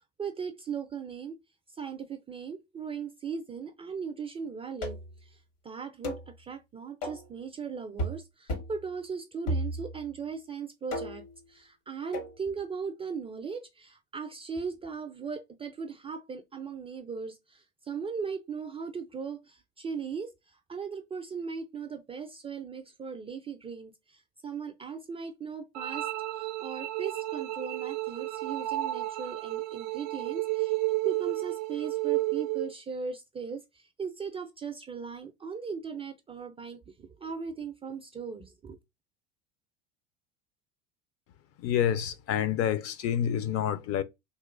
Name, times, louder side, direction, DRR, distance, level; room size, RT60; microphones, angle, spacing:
voice 1, 0.2-1.4 1.7-11.2 11.5-26.1 26.3-30.8 31.0-38.8, right 5 dB, 15° right, 0.3 m, -38 dB
sound 1, 4.8-5.2 6.0-6.3 7.0-7.3 8.0-8.2 8.5-8.8 9.5-10.1 10.9-11.3 12.1-12.4, equal, 75° left, 1.8 m, -34 dB
sound 2, 25.7-32.7, right 17 dB, 60° right, 0.6 m, -32 dB
voice 2, 41.6-44.0, left 9 dB, 40° left, 0.5 m, -28 dB
3.1 x 3.0 x 2.4 m
hypercardioid pair, 85°, 37 cm